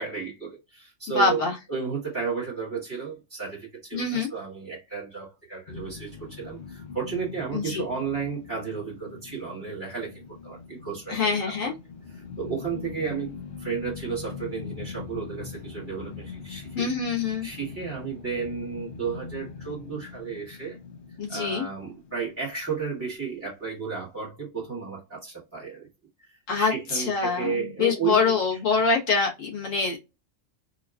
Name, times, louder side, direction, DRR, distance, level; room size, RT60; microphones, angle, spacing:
voice 1, 0.0-11.7 12.1-16.9 17.4-20.8 21.3-25.9 26.2-26.3 26.6-28.4, right 6 dB, 10° right, 1.1 m, -33 dB
voice 2, 1.1-1.5 3.9-4.3 7.5-7.8 11.1-11.7 16.7-17.5 21.2-21.6 26.5-30.0, left 4 dB, 90° left, 1.6 m, -25 dB
sound 1, 5.7-22.9, left 5 dB, 50° left, 0.8 m, -42 dB
3.9 x 2.2 x 2.3 m
omnidirectional pair, 1.3 m